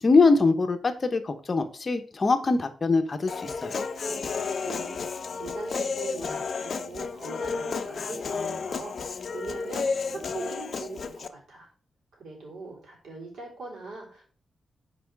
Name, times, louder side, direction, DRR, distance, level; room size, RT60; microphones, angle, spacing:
voice 1, 0.0-3.8, left 3 dB, 35° left, 7 dB, 0.9 m, -23 dB
Human voice, 3.3-11.3, left 5 dB, 55° left, 0.5 m, -32 dB
voice 2, 4.6-11.7 12.1-14.2, right 3 dB, 85° right, -3 dB, 3.6 m, -41 dB
5.9 x 4.8 x 4.6 m, 0.42 s
wide cardioid pair, 120°, 0 cm